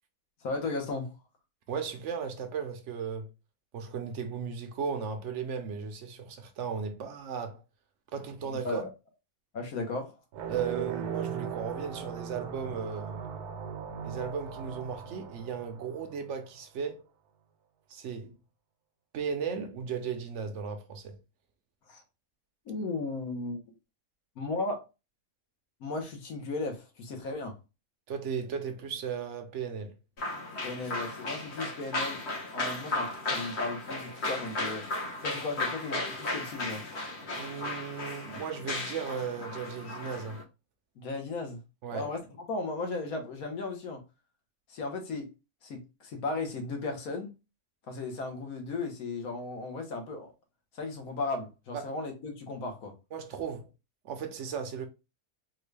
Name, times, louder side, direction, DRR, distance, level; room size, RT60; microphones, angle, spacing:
voice 1, 0.4-1.1 8.6-8.9 9.5-10.1 21.9-22.0 22.7-23.6 24.4-24.8 25.8-27.6 30.6-32.2 32.5-34.9 35.2-36.9 41.0-41.6 41.9-44.0 44.7-45.3 45.6-47.3 47.9-50.3 50.7-52.9, left 3 dB, 70° left, 1.4 m, -35 dB
voice 2, 1.7-3.3 3.7-7.6 8.1-8.9 10.5-13.3 14.0-17.0 17.9-18.4 19.1-21.2 28.1-29.9 37.3-40.4 41.8-42.1 51.7-51.9 53.1-53.7 54.0-54.9, right 6 dB, 65° right, 0.8 m, -36 dB
sound 1, 10.3-16.5, right 7 dB, 80° right, 1.2 m, -39 dB
sound 2, 30.2-40.4, left 2 dB, 50° left, 1.2 m, -35 dB
3.7 x 2.2 x 3.2 m
omnidirectional pair, 1.6 m